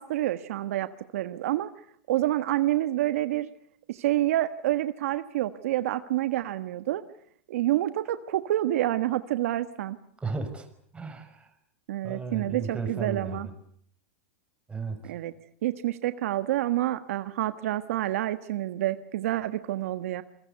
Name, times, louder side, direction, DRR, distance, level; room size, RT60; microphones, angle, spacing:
voice 1, 0.0-1.7 2.1-3.5 3.9-7.0 7.5-10.0 11.9-13.5 15.0-15.3 15.6-20.2, right 14 dB, 70° right, 11 dB, 1.4 m, -28 dB
voice 2, 10.2-10.7 10.9-11.5 12.0-13.5 14.7-15.1, right 4 dB, 15° right, 7 dB, 5.8 m, -34 dB
27.5 x 23.0 x 8.1 m, 0.65 s
hypercardioid pair, 110°, 8 cm